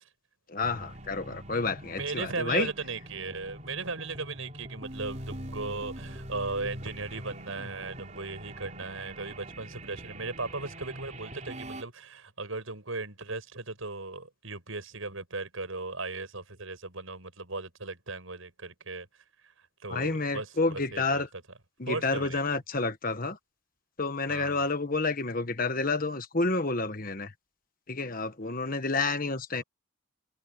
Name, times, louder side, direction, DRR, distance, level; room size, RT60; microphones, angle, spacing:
voice 1, 0.5-2.7 19.9-21.3 21.8-23.4 24.0-27.3 27.9-29.6, left 3 dB, 40° left, 1.4 m, -29 dB
sound 1, 0.6-11.8, right 1 dB, 35° right, 5.0 m, -43 dB
voice 2, 1.9-19.1 19.8-21.4 21.9-22.4 24.3-24.7, right 3 dB, 75° right, 6.1 m, -37 dB
head